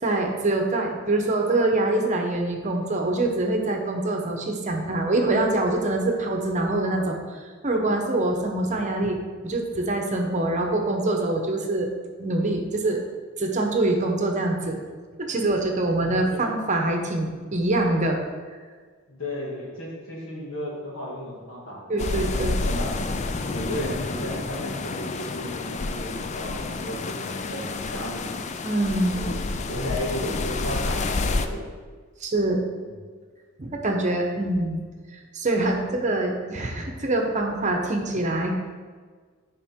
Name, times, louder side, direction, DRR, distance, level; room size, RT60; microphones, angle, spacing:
voice 1, 0.0-7.4 7.6-9.2 9.4-11.9 12.2-13.0 13.4-14.8 15.2-18.2 21.9-22.6 28.6-29.2 32.2-32.6 33.6-34.8 35.1-38.7, right 2 dB, 35° right, 2 dB, 0.9 m, -24 dB
voice 2, 16.0-16.6 19.1-22.9 23.5-28.4 29.1-31.6 32.8-33.1, equal, 70° left, -4 dB, 2.2 m, -34 dB
sound 1, 22.0-31.5, left 3 dB, 35° left, 0.4 m, -29 dB
9.9 x 5.2 x 3.7 m, 1.5 s
head